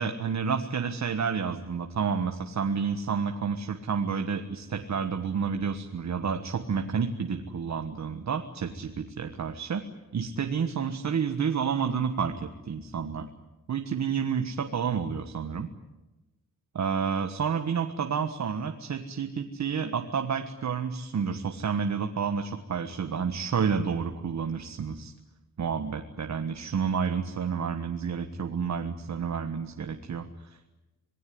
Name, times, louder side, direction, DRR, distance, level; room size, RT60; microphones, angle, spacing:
voice 1, 0.0-9.8 10.1-13.3 13.7-15.7 16.7-25.1 25.6-30.8, right 6 dB, 55° right, 6 dB, 1.5 m, -30 dB
27.0 x 20.5 x 9.5 m, 1.0 s
wide cardioid pair, 170°, 34 cm